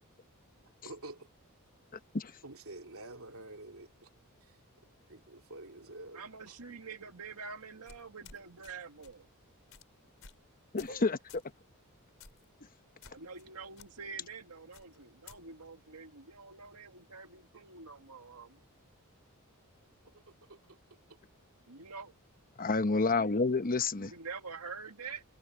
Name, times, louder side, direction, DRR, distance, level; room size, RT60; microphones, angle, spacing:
voice 1, 0.8-1.3 2.4-4.1 4.4-4.6 5.1-6.6 10.9-11.0 17.5-17.6 20.1-20.8 21.1-21.2, right 2 dB, 70° right, 3.2 m, -49 dB
voice 2, 6.1-9.3 13.0-18.6 21.7-22.1 23.8-25.2, right 5 dB, 85° right, 2.0 m, -46 dB
sound 1, 7.9-8.7 9.0-9.2 9.7-9.9 10.2-10.4 10.8-11.0 11.3-11.5 12.2-12.5 13.0-13.5 13.8-13.9 14.7-15.4, left 6 dB, 60° left, 4.6 m, -54 dB
voice 3, 10.7-11.2 22.6-24.1, left 3 dB, 40° left, 1.0 m, -29 dB
head